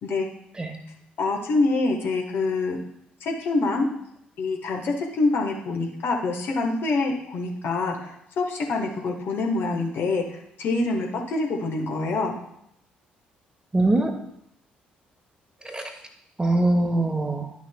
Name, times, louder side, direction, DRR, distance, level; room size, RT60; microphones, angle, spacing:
voice 1, 1.2-2.8 3.2-3.9 4.4-12.3, left 3 dB, 55° left, 1 dB, 1.2 m, -26 dB
voice 2, 13.7-14.1 15.6-15.9 16.4-17.5, right 2 dB, 20° right, 5 dB, 1.2 m, -22 dB
11.5 x 6.0 x 2.3 m, 0.76 s
figure-of-eight pair, 45°, 5 cm